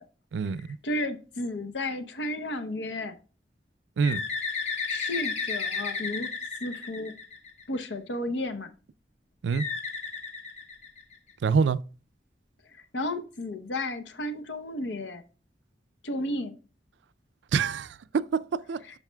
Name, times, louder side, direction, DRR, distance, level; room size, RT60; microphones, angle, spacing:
voice 1, 0.3-0.7 4.0-4.2 9.4-9.7 11.4-11.8 17.5-18.8, right 5 dB, 85° right, 0.4 m, -26 dB
voice 2, 0.8-3.2 4.9-6.3 6.6-7.2 7.7-8.7 12.7-15.2 16.0-16.5 18.8-19.0, left 1 dB, 90° left, 0.8 m, -33 dB
Bird, 4.0-7.8 9.5-11.3, left 5 dB, 40° left, 0.7 m, -33 dB
10.5 x 5.5 x 2.2 m
head